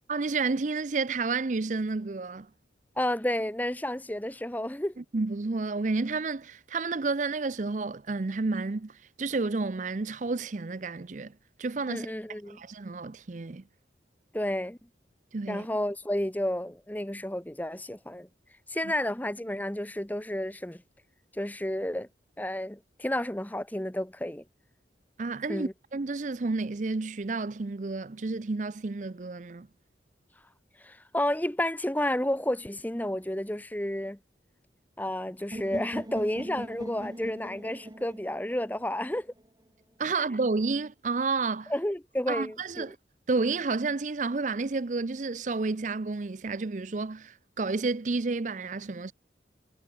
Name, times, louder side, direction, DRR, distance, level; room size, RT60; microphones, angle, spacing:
voice 1, 0.1-2.5 5.1-12.1 12.4-13.7 15.3-15.7 18.8-18.9 25.2-29.7 40.0-41.7 42.3-43.0 43.3-49.1, right 3 dB, 40° right, 0.5 m, -30 dB
voice 2, 3.0-5.0 11.9-12.6 14.3-14.8 15.5-18.3 18.7-20.8 21.3-22.1 22.4-24.4 25.5-25.7 30.8-34.2 35.0-39.3 41.7-42.9, left 1 dB, 10° left, 0.9 m, -31 dB
sound 1, 35.5-39.5, equal, 20° right, 1.8 m, -40 dB
head